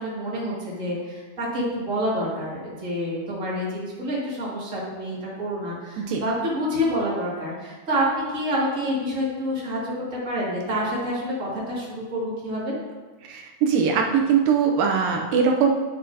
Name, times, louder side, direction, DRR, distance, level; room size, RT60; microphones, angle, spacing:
voice 1, 0.0-12.8, equal, 25° right, -7 dB, 1.8 m, -28 dB
voice 2, 13.2-15.7, right 6 dB, 80° right, 1 dB, 2.1 m, -21 dB
9.3 x 7.4 x 2.8 m, 1.3 s
omnidirectional pair, 4.6 m